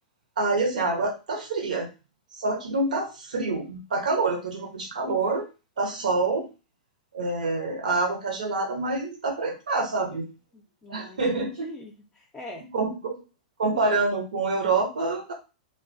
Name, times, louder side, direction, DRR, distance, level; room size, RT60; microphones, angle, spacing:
voice 1, 0.4-1.9 2.4-5.5 5.8-6.5 7.1-10.3 10.9-11.7 12.7-13.2 13.6-15.3, right 3 dB, 75° right, 3 dB, 0.8 m, -26 dB
voice 2, 10.5-12.6, left 2 dB, 20° left, -1 dB, 0.5 m, -43 dB
2.3 x 2.2 x 2.5 m, 0.30 s
hypercardioid pair, 110°, 4 cm